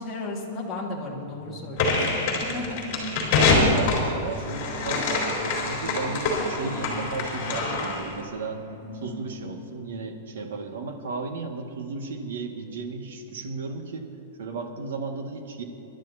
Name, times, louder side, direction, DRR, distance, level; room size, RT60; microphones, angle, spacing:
voice 1, 0.0-2.8, left 2 dB, 10° left, -5 dB, 1.9 m, -35 dB
sound 1, 1.3-9.8, equal, 10° right, 3.9 m, -41 dB
sound 2, 1.8-8.1, left 3 dB, 35° left, 3.8 m, -25 dB
voice 2, 3.6-8.6 8.9-14.1 14.4-15.6, right 4 dB, 80° right, 3 dB, 1.9 m, -34 dB
26.0 x 12.0 x 2.8 m, 3.0 s
supercardioid pair, 175°, 0 cm